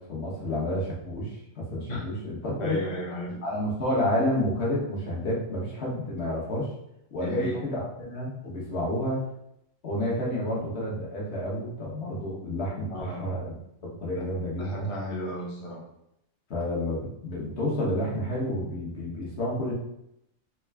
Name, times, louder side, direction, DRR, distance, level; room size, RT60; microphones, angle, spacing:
voice 1, 0.0-2.8 3.4-6.7 7.1-9.3 9.8-13.5 14.0-14.9 16.5-19.7, left 1 dB, 55° left, -4 dB, 1.2 m, -30 dB
voice 2, 2.6-3.4 7.2-7.6 12.9-13.3 14.1-14.3 14.6-15.8, left 1 dB, 35° left, -3 dB, 0.5 m, -34 dB
3.6 x 2.3 x 3.3 m, 0.80 s
omnidirectional pair, 1.4 m